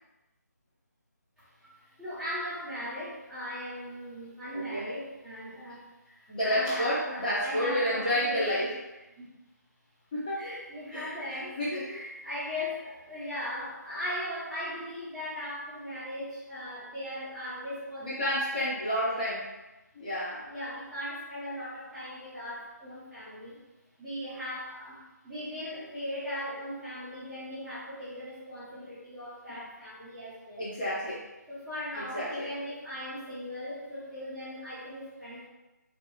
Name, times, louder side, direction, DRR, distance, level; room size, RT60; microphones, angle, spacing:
voice 1, 1.4-8.7 9.1-9.3 10.3-18.3 19.0-19.3 20.5-23.6 24.0-30.7 31.5-35.5, left 1 dB, ahead, -16 dB, 1.0 m, -38 dB
voice 2, 4.5-4.9 6.3-8.7 10.1-10.4 10.9-11.9 18.0-19.4 19.9-20.4 29.5-29.6 30.6-31.2 32.0-32.5, equal, 25° left, -8 dB, 0.8 m, -30 dB
4.7 x 2.9 x 2.3 m, 1.0 s
figure-of-eight pair, 155°, 10 cm